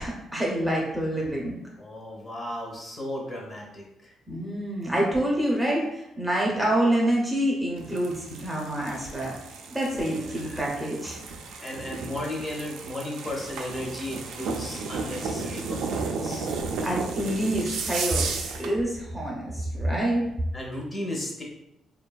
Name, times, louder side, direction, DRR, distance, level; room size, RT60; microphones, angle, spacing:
voice 1, 0.0-1.6 4.3-9.3 9.7-11.1 16.8-20.3, right 1 dB, 10° right, -3 dB, 0.5 m, -27 dB
voice 2, 1.8-4.1 10.1-10.6 11.6-16.5 20.5-21.4, left 1 dB, 30° left, -1 dB, 0.8 m, -35 dB
sound 1, 7.8-18.7, right 4 dB, 85° right, 0.3 m, -34 dB
2.6 x 2.2 x 2.2 m, 0.86 s
cardioid pair, 90°, 0 cm